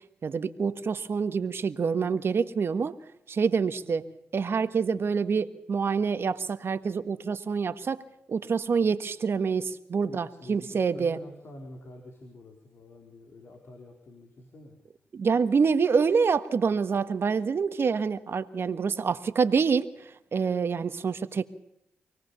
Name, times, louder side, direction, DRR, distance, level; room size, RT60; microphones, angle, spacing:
voice 1, 0.2-2.9 3.3-4.0 4.3-8.0 8.3-11.2 15.1-21.4, right 5 dB, 60° right, 12 dB, 1.5 m, -26 dB
voice 2, 10.1-14.8, left 1 dB, 65° left, 2 dB, 4.5 m, -47 dB
24.5 x 18.5 x 7.0 m, 0.78 s
supercardioid pair, 45°, 5 cm